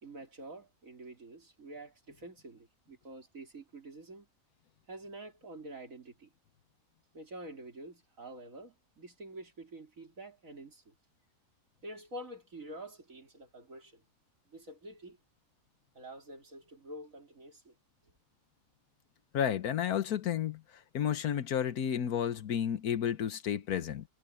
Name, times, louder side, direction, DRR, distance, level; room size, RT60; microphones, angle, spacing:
voice 1, 0.0-4.3 4.9-6.3 7.1-10.9 11.8-14.0 14.5-15.2 15.9-17.7, right 1 dB, 60° right, 4.2 m, -47 dB
voice 2, 19.3-20.6 20.9-24.0, left 9 dB, 80° left, 1.5 m, -31 dB
omnidirectional pair, 1.6 m